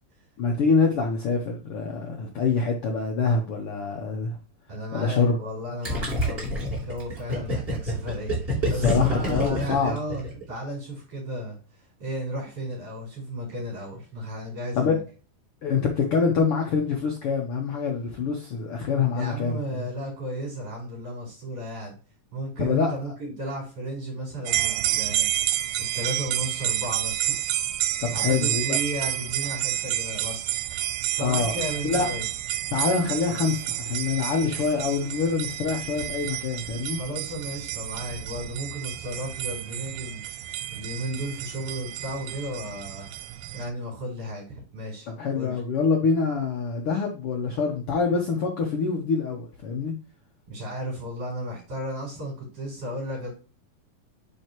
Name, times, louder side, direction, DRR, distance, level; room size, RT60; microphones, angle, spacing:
voice 1, 0.4-4.4 4.9-5.4 8.7-10.0 14.7-15.0 15.6-19.8 22.6-22.9 28.0-28.8 31.2-31.5 31.8-32.1 32.7-37.0 45.1-49.9, left 5 dB, 80° left, 1.2 m, -25 dB
voice 2, 4.7-6.6 6.8-11.6 12.0-15.0 19.1-21.9 22.3-25.3 25.9-27.3 28.1-30.5 31.2-32.2 37.0-43.1 43.5-45.1 45.3-45.6 50.5-53.3, equal, 45° right, 5.5 m, -34 dB
Gurgling, 5.8-10.5, left 1 dB, 15° right, 3.3 m, -27 dB
sound 1, 24.5-43.7, right 13 dB, 90° right, 2.4 m, -30 dB
9.8 x 4.6 x 3.0 m
omnidirectional pair, 4.1 m